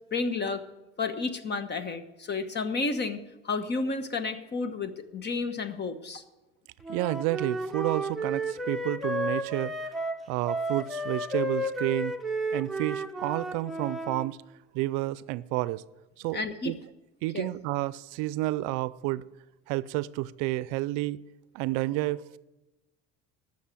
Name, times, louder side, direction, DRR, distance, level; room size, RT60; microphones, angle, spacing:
voice 1, 0.1-0.6 1.0-6.2 16.3-16.8 17.3-17.5, left 4 dB, 35° left, 11 dB, 1.2 m, -31 dB
Wind instrument woodwind instrument, 6.8-14.3, right 1 dB, ahead, 0.9 m, -32 dB
voice 2, 6.9-9.9 10.3-12.2 12.5-14.4 14.7-15.8 16.2-16.4 16.6-16.8 17.2-19.2 19.7-21.2 21.5-22.4, right 18 dB, 75° right, 18 dB, 0.5 m, -30 dB
13.0 x 6.5 x 8.5 m, 1.1 s
supercardioid pair, 100°, 31 cm